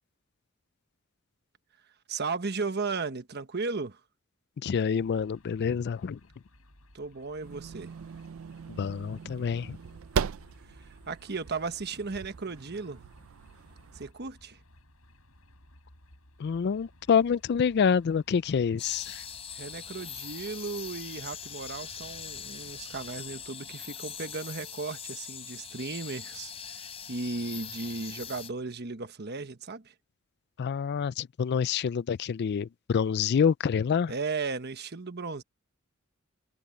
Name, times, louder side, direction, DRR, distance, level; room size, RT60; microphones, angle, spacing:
voice 1, 2.1-4.0 6.9-7.9 10.8-13.0 13.9-14.6 19.5-29.9 34.1-35.4, right 4 dB, 50° right, 1.2 m, -35 dB
voice 2, 4.6-6.2 8.7-9.8 16.4-19.2 30.6-34.1, left 6 dB, 50° left, 0.4 m, -27 dB
sound 1, 4.9-23.5, left 1 dB, 85° left, 7.5 m, -58 dB
sound 2, 7.4-14.1, right 6 dB, 70° right, 0.4 m, -38 dB
sound 3, 18.8-28.5, left 7 dB, 30° left, 3.4 m, -42 dB
head